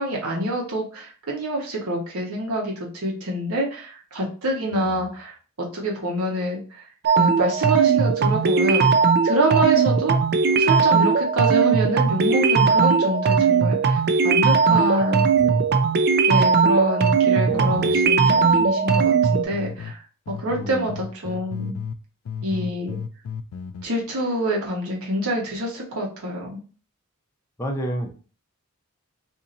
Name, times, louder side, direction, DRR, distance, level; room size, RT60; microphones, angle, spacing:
voice 1, 0.0-6.8 7.2-8.9 9.2-10.1 10.6-15.2 16.3-20.0 20.3-21.7 22.4-23.0 23.8-26.6, right 1 dB, 85° right, -2 dB, 1.2 m, -26 dB
voice 2, 4.7-5.0 14.4-14.8 15.3-15.7 16.7-16.9 17.5-18.1 20.6-21.0 27.6-28.1, equal, 15° left, 1 dB, 0.7 m, -32 dB
sound 1, 7.0-19.4, right 5 dB, 50° right, 0.4 m, -19 dB
sound 2, 17.5-19.9 20.3-22.0 22.2-23.8, left 6 dB, 75° left, 0.3 m, -34 dB
2.8 x 2.8 x 3.8 m, 0.37 s
head